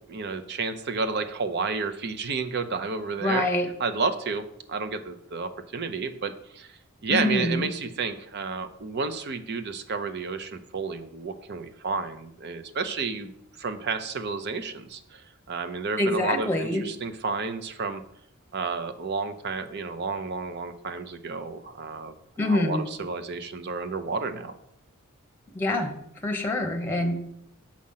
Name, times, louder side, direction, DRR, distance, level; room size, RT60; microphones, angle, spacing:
voice 1, 0.1-3.5 3.8-6.7 7.0-13.3 13.6-18.0 18.5-22.1 22.4-24.6, right 4 dB, 50° right, 10 dB, 0.7 m, -31 dB
voice 2, 3.2-3.7 7.1-7.7 16.0-16.9 22.4-22.9 25.5-25.9 26.2-27.1, left 1 dB, 10° left, 3 dB, 1.0 m, -25 dB
7.5 x 5.0 x 5.7 m, 0.74 s
head